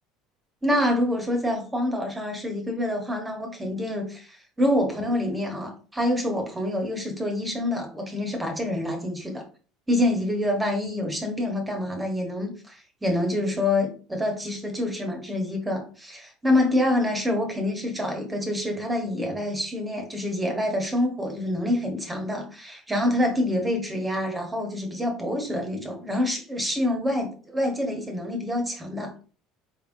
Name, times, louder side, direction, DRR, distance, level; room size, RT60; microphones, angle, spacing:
voice 1, 0.6-9.4 9.9-29.1, left 1 dB, 15° right, 3 dB, 1.1 m, -26 dB
4.5 x 3.5 x 2.6 m, 0.38 s
figure-of-eight pair, 65°, 0 cm